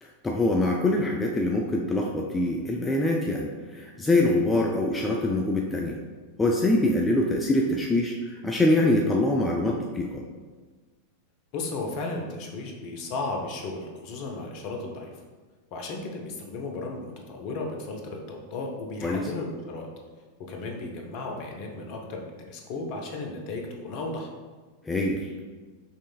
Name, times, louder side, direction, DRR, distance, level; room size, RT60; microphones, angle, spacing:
voice 1, 0.0-6.0 6.4-10.2 19.0-19.3 24.9-25.3, left 1 dB, 15° left, -1 dB, 0.4 m, -24 dB
voice 2, 11.5-15.1 15.7-19.9 20.5-24.3, left 3 dB, 45° left, 1 dB, 0.7 m, -35 dB
5.3 x 3.1 x 2.3 m, 1.4 s
figure-of-eight pair, 90°, 0 cm